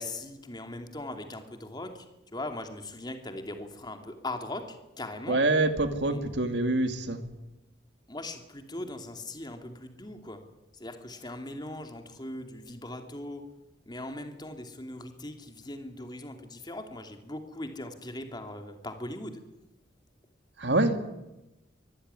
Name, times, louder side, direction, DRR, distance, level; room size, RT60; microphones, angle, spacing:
voice 1, 0.0-2.1 2.3-5.4 6.1-6.2 8.1-10.4 10.7-13.5 13.9-19.4, left 1 dB, 25° left, 6 dB, 2.7 m, -40 dB
voice 2, 5.3-7.2 20.6-21.0, right 2 dB, 70° right, 8 dB, 2.3 m, -25 dB
24.5 x 15.0 x 9.7 m, 0.97 s
head